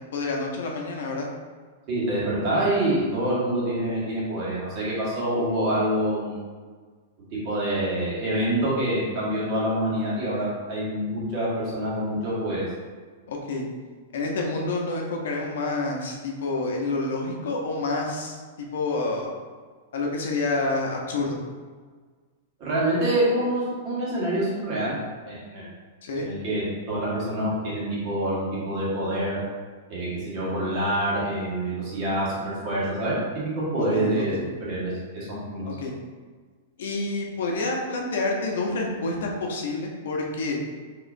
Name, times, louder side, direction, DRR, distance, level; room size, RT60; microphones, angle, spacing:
voice 1, 0.1-1.3 13.3-13.6 14.1-19.3 19.9-21.4 26.0-26.3 33.8-34.4 35.8-35.9 36.8-40.6, left 3 dB, 70° left, 0 dB, 0.8 m, -28 dB
voice 2, 1.9-6.4 7.4-12.6 22.6-25.0 25.3-25.7 26.1-29.4 29.9-35.7, right 1 dB, 35° right, -8 dB, 1.5 m, -26 dB
4.7 x 3.0 x 2.6 m, 1.5 s
supercardioid pair, 170°, 0 cm